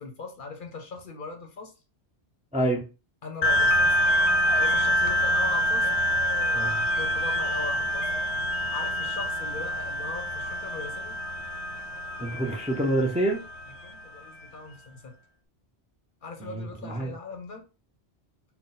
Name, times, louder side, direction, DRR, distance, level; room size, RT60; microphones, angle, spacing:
voice 1, 0.0-1.7 3.2-4.0 4.5-6.0 7.0-8.1 8.7-11.2 13.8-15.1 16.2-17.6, left 4 dB, 55° left, 0.8 m, -39 dB
voice 2, 2.5-2.8 6.5-6.8 12.2-13.4 16.4-17.1, right 1 dB, 10° right, 0.5 m, -27 dB
sound 1, 3.4-14.3, equal, 85° left, 0.9 m, -26 dB
3.9 x 2.2 x 3.8 m
omnidirectional pair, 1.1 m